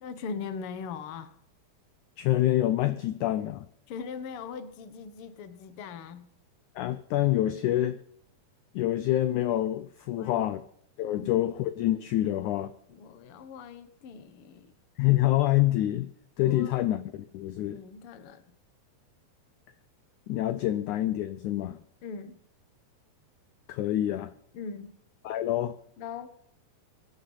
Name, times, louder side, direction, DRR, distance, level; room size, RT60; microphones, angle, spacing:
voice 1, 0.0-1.4 3.9-6.2 10.1-10.5 11.0-11.3 12.9-14.7 16.4-16.9 17.7-18.4 22.0-22.4 24.5-25.0 26.0-26.3, left 5 dB, 60° left, 11 dB, 1.5 m, -40 dB
voice 2, 2.2-3.7 6.8-8.0 8.7-10.6 11.0-12.7 15.0-16.1 16.4-17.8 20.3-21.8 23.7-24.3 25.2-25.8, left 14 dB, 80° left, 12 dB, 1.7 m, -26 dB
24.0 x 9.8 x 5.6 m, 0.68 s
omnidirectional pair, 4.3 m